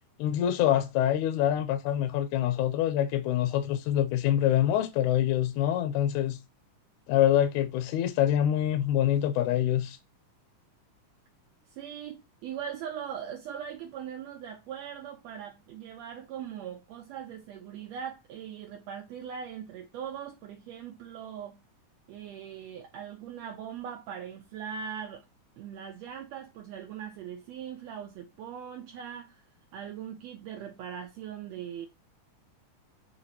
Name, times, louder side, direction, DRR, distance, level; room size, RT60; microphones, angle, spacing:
voice 1, 0.2-6.4 7.1-10.0, left 11 dB, 80° left, 1.8 m, -25 dB
voice 2, 11.7-21.6 22.1-25.2 25.6-29.4 29.7-31.9, right 8 dB, 80° right, 1.5 m, -40 dB
5.8 x 2.8 x 2.7 m
omnidirectional pair, 3.7 m